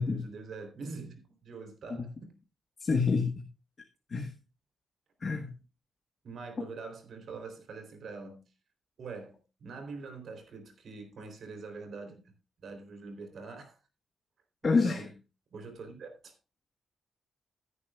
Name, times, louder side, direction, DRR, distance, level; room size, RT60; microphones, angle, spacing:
voice 1, 0.0-2.3 6.2-8.4 9.0-12.2 12.6-13.8 14.6-15.1 15.5-16.3, right 4 dB, 60° right, 3.6 m, -44 dB
voice 2, 2.8-3.4 4.1-4.3 5.2-5.5 6.6-6.7 14.6-15.1, left 4 dB, 35° left, 1.4 m, -28 dB
16.5 x 9.8 x 2.4 m
wide cardioid pair, 155°, 0 cm